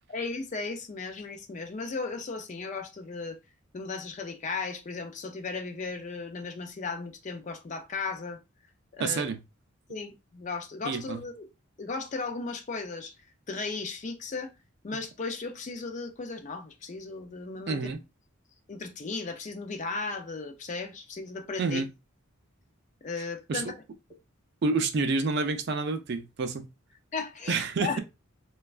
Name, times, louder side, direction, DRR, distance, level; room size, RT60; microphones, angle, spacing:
voice 1, 0.1-3.4 3.7-8.4 8.9-9.2 9.9-11.5 11.8-13.1 13.5-14.5 14.8-17.8 18.7-21.8 23.0-23.7 27.1-28.0, left 4 dB, 35° left, 0.4 m, -36 dB
voice 2, 9.0-9.4 10.8-11.2 17.7-18.0 21.6-21.9 23.2-23.7 24.6-26.7 27.5-28.0, right 3 dB, 50° right, 0.4 m, -29 dB
3.1 x 2.2 x 2.3 m
head